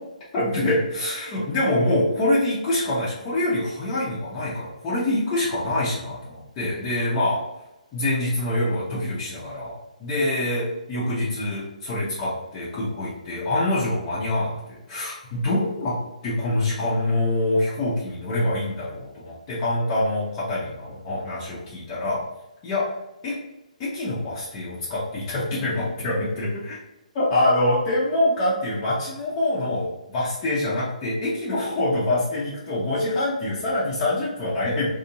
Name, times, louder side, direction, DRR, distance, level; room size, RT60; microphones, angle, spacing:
voice 1, 0.3-7.4 7.9-16.0 16.2-22.2 22.6-22.8 23.2-23.3 23.8-26.8 27.1-34.9, left 1 dB, 25° left, -9 dB, 0.8 m, -25 dB
2.8 x 2.6 x 2.6 m, 0.97 s
figure-of-eight pair, 135°, 4 cm